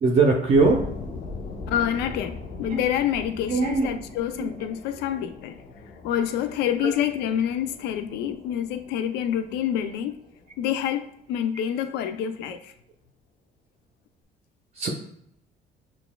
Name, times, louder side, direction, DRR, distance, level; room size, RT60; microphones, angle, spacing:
voice 1, 0.0-0.8 2.7-2.8 3.5-4.0 4.4-4.5 6.8-6.9 14.8-14.9, right 3 dB, 40° right, 0.6 m, -21 dB
sound 1, 0.5-11.3, left 3 dB, 55° left, 0.7 m, -40 dB
voice 2, 1.7-5.6 6.0-10.2 10.6-12.7, left 10 dB, 85° left, 0.4 m, -27 dB
5.8 x 2.3 x 2.2 m
cardioid pair, 110°, 17 cm